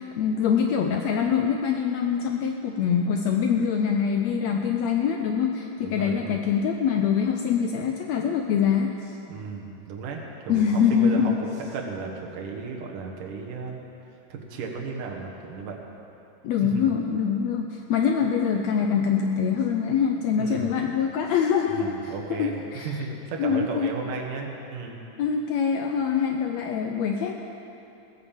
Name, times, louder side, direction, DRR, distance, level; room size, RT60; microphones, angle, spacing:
voice 1, 0.0-9.1 10.5-11.3 16.4-22.9 23.4-23.9 25.2-27.4, left 7 dB, 75° left, 3 dB, 1.6 m, -24 dB
voice 2, 5.8-6.4 9.3-13.8 14.3-15.8 16.6-16.9 20.4-20.8 21.7-25.0, right 4 dB, 75° right, 1 dB, 3.0 m, -34 dB
17.0 x 9.6 x 7.3 m, 2.8 s
omnidirectional pair, 3.8 m